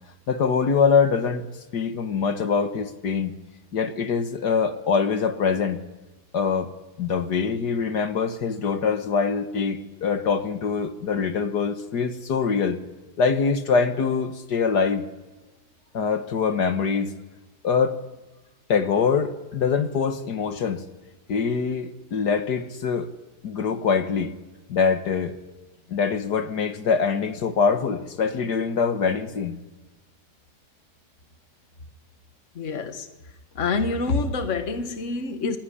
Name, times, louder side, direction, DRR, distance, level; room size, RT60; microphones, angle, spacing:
voice 1, 0.3-1.5 1.7-3.3 3.7-5.8 6.3-6.7 7.0-12.8 13.2-15.0 15.9-17.1 17.6-18.0 18.7-20.8 21.3-23.1 23.4-24.3 24.7-25.3 25.9-29.6 35.4-35.5, left 5 dB, 75° left, 2.0 m, -24 dB
voice 2, 32.6-33.1 33.6-35.6, left 3 dB, 45° left, 1.8 m, -26 dB
26.5 x 21.0 x 10.0 m
omnidirectional pair, 1.8 m